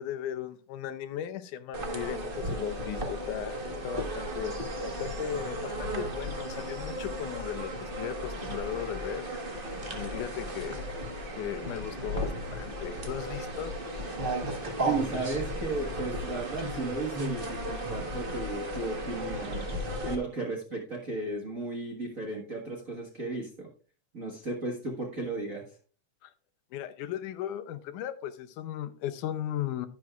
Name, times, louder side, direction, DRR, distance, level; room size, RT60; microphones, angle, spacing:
voice 1, 0.0-9.2 9.9-10.8 11.4-13.7 26.2-26.3 26.7-29.9, left 10 dB, 80° left, 11 dB, 2.2 m, -37 dB
sound 1, 1.7-20.1, right 1 dB, 70° right, 0.5 m, -35 dB
voice 2, 14.8-19.6 20.0-23.7 24.1-25.6, right 3 dB, 40° right, -1 dB, 1.3 m, -34 dB
11.0 x 10.5 x 2.4 m, 0.39 s
omnidirectional pair, 3.6 m